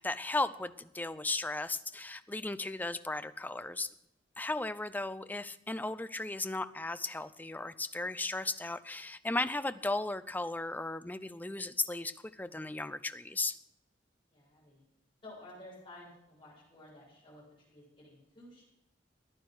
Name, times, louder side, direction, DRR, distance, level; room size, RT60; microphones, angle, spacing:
voice 1, 0.0-3.9 4.4-13.6, left 2 dB, 10° left, 13 dB, 0.5 m, -36 dB
voice 2, 14.3-14.8 15.2-18.6, left 1 dB, 30° left, -4 dB, 7.2 m, -53 dB
14.0 x 10.0 x 6.4 m, 0.82 s
head